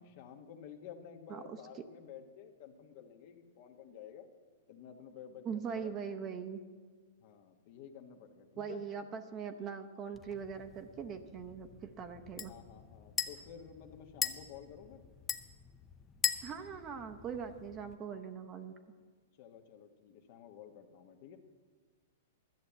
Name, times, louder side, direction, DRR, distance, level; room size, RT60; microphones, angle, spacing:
voice 1, 0.0-4.3 4.7-5.9 7.2-8.8 12.4-15.0 19.4-21.4, left 8 dB, 50° left, 5 dB, 1.2 m, -52 dB
voice 2, 5.4-6.6 8.6-12.5 16.4-18.7, right 7 dB, 25° right, 6 dB, 0.8 m, -41 dB
sound 1, 10.1-18.0, left 7 dB, 15° left, 0.6 m, -41 dB
12.0 x 7.2 x 8.0 m, 1.5 s
hypercardioid pair, 140°, 0 cm